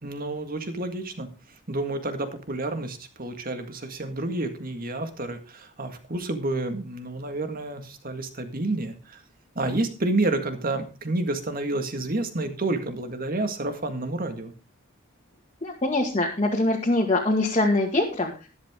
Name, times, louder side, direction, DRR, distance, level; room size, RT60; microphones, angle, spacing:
voice 1, 0.0-1.3 1.7-9.2 9.6-14.5, right 2 dB, 45° right, 8 dB, 1.9 m, -29 dB
voice 2, 15.6-18.3, left 2 dB, 30° left, -2 dB, 2.0 m, -23 dB
13.0 x 11.0 x 3.7 m, 0.31 s
head